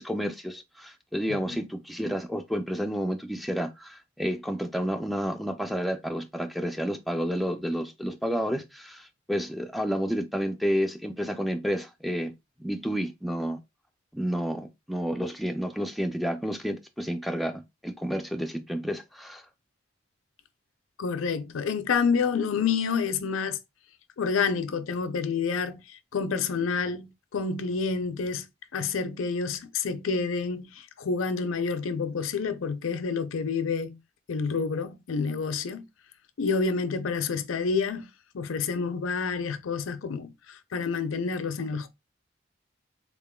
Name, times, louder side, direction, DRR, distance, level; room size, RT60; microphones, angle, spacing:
voice 1, 0.0-12.3 12.6-13.6 14.1-19.4, equal, ahead, 0.3 m, -30 dB
voice 2, 21.0-23.6 24.2-28.5 28.7-34.0 34.3-35.8 36.4-38.1 38.3-41.9, left 5 dB, 90° left, 0.5 m, -28 dB
3.7 x 3.7 x 2.2 m
head